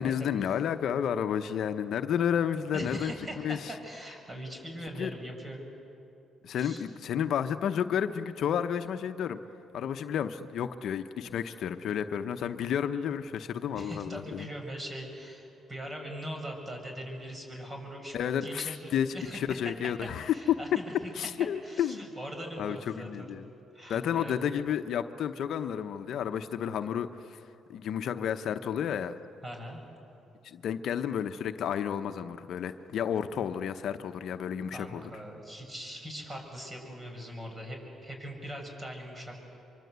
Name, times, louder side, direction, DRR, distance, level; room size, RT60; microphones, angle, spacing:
voice 1, 0.0-3.7 5.0-5.1 6.4-9.4 9.7-14.5 18.1-20.6 21.2-22.0 22.6-23.5 23.9-27.4 27.7-29.1 30.4-35.0, left 8 dB, 70° left, 9 dB, 0.9 m, -31 dB
voice 2, 2.7-5.6 6.6-6.8 13.8-18.2 18.4-19.4 20.0-20.9 21.6-23.3 23.7-24.3 29.4-29.8 34.7-37.8 38.0-39.4, equal, 25° right, 2 dB, 7.1 m, -41 dB
25.0 x 24.5 x 8.1 m, 2.9 s
supercardioid pair, 70°, 0 cm